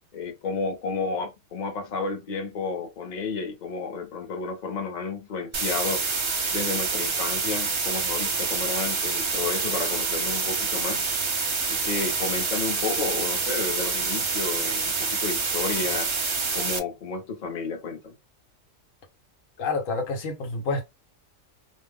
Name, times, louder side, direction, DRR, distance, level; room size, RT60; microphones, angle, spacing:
voice 1, 0.1-6.1 6.5-11.0 11.7-16.1 16.5-18.1, left 4 dB, 40° left, 0.8 m, -31 dB
sound 1, 5.5-16.8, right 4 dB, 50° right, 0.3 m, -27 dB
voice 2, 19.6-20.8, left 3 dB, 80° left, 1.1 m, -28 dB
2.4 x 2.0 x 3.4 m
omnidirectional pair, 1.3 m